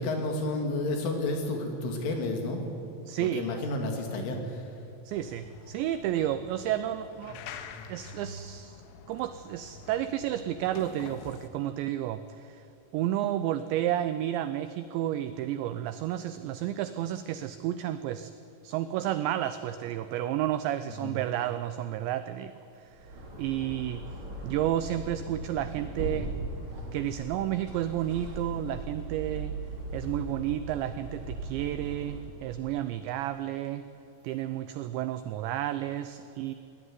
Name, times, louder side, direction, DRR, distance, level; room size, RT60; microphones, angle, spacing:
voice 1, 0.0-2.8 3.2-4.6 7.7-7.9 21.0-21.3, left 2 dB, 70° left, 3 dB, 5.2 m, -31 dB
voice 2, 3.1-3.5 5.1-7.4 7.9-8.8 9.1-12.6 12.9-18.3 18.6-22.5 22.8-22.9 23.4-24.0 24.4-26.3 26.9-29.6 29.9-33.9 34.2-36.5, right 12 dB, 85° right, 12 dB, 2.6 m, -31 dB
sound 1, 5.1-11.5, left 4 dB, 85° left, 3.8 m, -46 dB
sound 2, 22.9-32.5, right 2 dB, 30° right, 3.7 m, -39 dB
22.5 x 17.5 x 9.7 m, 2.6 s
omnidirectional pair, 5.9 m